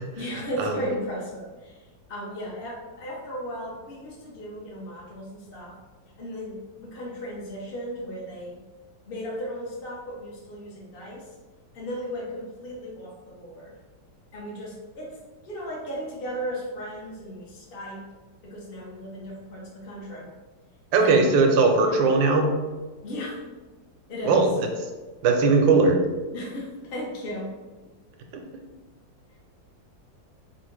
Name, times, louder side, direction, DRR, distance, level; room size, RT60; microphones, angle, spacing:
voice 1, 0.1-1.8 2.1-5.8 6.2-8.6 9.1-11.2 11.7-13.7 14.3-15.1 15.4-18.0 18.4-20.3 21.0-21.2 21.8-22.0 23.0-23.4 24.1-24.4 26.3-27.5, equal, 40° left, -4 dB, 0.9 m, -35 dB
voice 2, 20.9-22.5 24.3-24.7 25.2-26.0 28.3-28.4, right 3 dB, 75° right, 3 dB, 1.3 m, -19 dB
3.7 x 2.5 x 4.5 m, 1.3 s
omnidirectional pair, 2.1 m